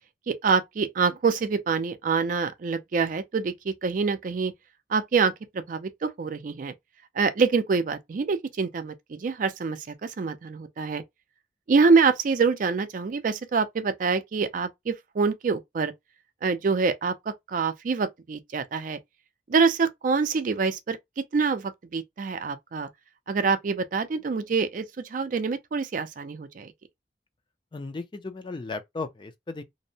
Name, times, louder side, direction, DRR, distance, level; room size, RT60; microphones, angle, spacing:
voice 1, 0.3-4.5 4.9-6.7 7.2-11.0 11.7-15.9 16.4-17.1 17.5-19.0 19.5-21.0 21.3-22.9 23.3-24.8 25.1-26.7, right 5 dB, 50° right, 0.4 m, -25 dB
voice 2, 27.7-29.6, left 3 dB, 25° left, 0.4 m, -35 dB
2.6 x 2.0 x 2.7 m
head